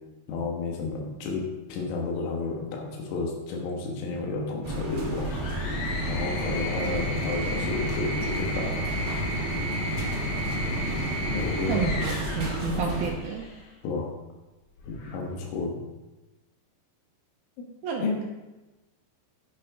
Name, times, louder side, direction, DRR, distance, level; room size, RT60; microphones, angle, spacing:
voice 1, 0.3-5.3 6.1-8.8 11.3-11.9 13.8-14.1 14.9-15.8 18.0-18.2, left 3 dB, 85° left, -1 dB, 4.1 m, -31 dB
sound 1, 4.6-13.1, right 1 dB, 45° right, 1.3 m, -33 dB
sound 2, 5.2-13.6 14.8-15.4, equal, 65° left, 3.5 m, -32 dB
voice 2, 11.7-13.5 17.8-18.2, right 5 dB, 80° right, 0 dB, 2.2 m, -30 dB
11.0 x 10.0 x 3.7 m, 1.1 s
omnidirectional pair, 5.6 m